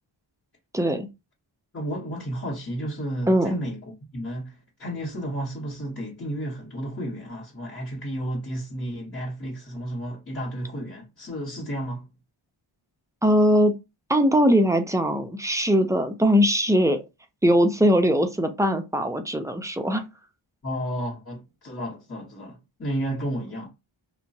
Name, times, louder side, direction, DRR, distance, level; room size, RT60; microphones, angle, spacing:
voice 1, 0.7-1.1 3.3-3.6 13.2-13.7 14.1-17.0 17.4-20.0, equal, 5° right, 0.4 m, -20 dB
voice 2, 1.7-12.1 20.6-23.7, right 1 dB, 30° left, 1.0 m, -32 dB
2.8 x 2.2 x 2.6 m
wide cardioid pair, 125°, 48 cm